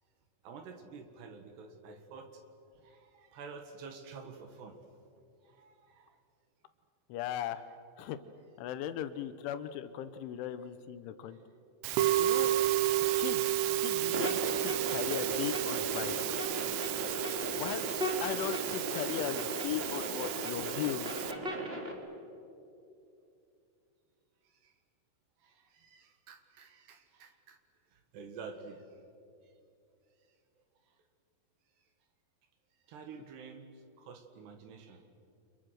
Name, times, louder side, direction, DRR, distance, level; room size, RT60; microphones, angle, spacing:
voice 1, 0.4-2.4 2.7-4.8 5.4-6.2 11.7-11.9 13.1-13.4 24.4-24.7 25.4-27.6 27.9-28.9 29.4-29.5 32.9-35.0, right 5 dB, 65° right, 6 dB, 3.4 m, -50 dB
voice 2, 7.1-7.6 8.0-8.2 8.6-11.4 12.2-12.5 13.1-16.2 17.5-17.8 18.2-21.1, left 11 dB, 80° left, 11 dB, 3.2 m, -38 dB
Musical instrument, 11.8-21.3, right 13 dB, 90° right, 3.7 m, -32 dB
sound 1, 14.1-21.9, right 1 dB, 25° right, 1.4 m, -37 dB
30.0 x 27.5 x 6.5 m, 2.6 s
omnidirectional pair, 5.7 m